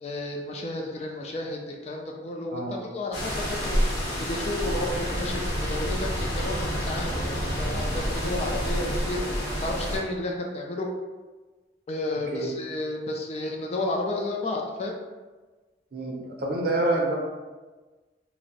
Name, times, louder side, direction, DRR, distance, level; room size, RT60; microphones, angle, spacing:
voice 1, 0.0-3.8 4.2-10.9 11.9-15.0, left 2 dB, 35° left, 0 dB, 0.3 m, -32 dB
sound 1, 3.1-10.0, equal, 60° left, 0.8 m, -28 dB
voice 2, 15.9-17.2, right 2 dB, 55° right, -2 dB, 0.6 m, -27 dB
2.5 x 2.0 x 3.8 m, 1.3 s
head